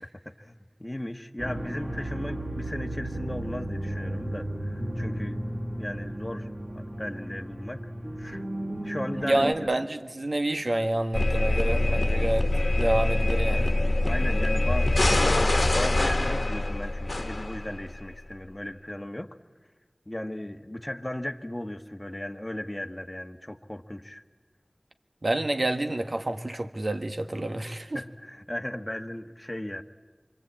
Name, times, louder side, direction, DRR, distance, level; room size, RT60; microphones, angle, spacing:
voice 1, 0.0-0.5 0.8-5.4 5.8-7.9 8.2-8.4 8.8-9.5 14.0-15.0 15.3-19.4 20.1-24.2 27.9-29.8, left 1 dB, 25° left, 1.3 m, -36 dB
sound 1, 1.4-9.5, right 1 dB, 45° right, 3.7 m, -34 dB
voice 2, 9.2-12.5 12.8-13.8 25.2-28.0, right 1 dB, 65° right, 1.6 m, -28 dB
sound 2, 11.1-18.0, left 2 dB, 65° left, 1.3 m, -24 dB
26.0 x 25.0 x 8.7 m
wide cardioid pair, 45°, 0 cm